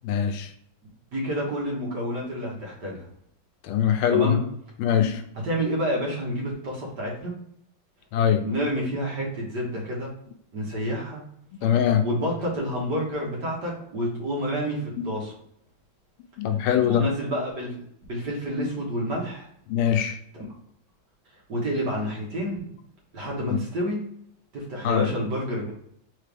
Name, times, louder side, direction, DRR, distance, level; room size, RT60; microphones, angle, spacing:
voice 1, 0.0-0.5 3.6-4.4 4.8-5.2 8.1-8.4 11.5-12.0 15.0-15.1 16.4-17.1 19.7-20.2 23.5-23.6 24.8-25.1, left 9 dB, 85° left, 7 dB, 1.4 m, -22 dB
voice 2, 1.1-3.1 4.1-4.4 5.4-7.3 8.4-10.1 10.5-11.2 12.0-15.3 16.8-17.8 18.1-19.5 20.3-20.5 21.5-22.7 23.1-24.0 24.5-25.7, equal, 55° right, -3 dB, 1.8 m, -29 dB
4.0 x 3.3 x 3.4 m, 0.69 s
omnidirectional pair, 2.3 m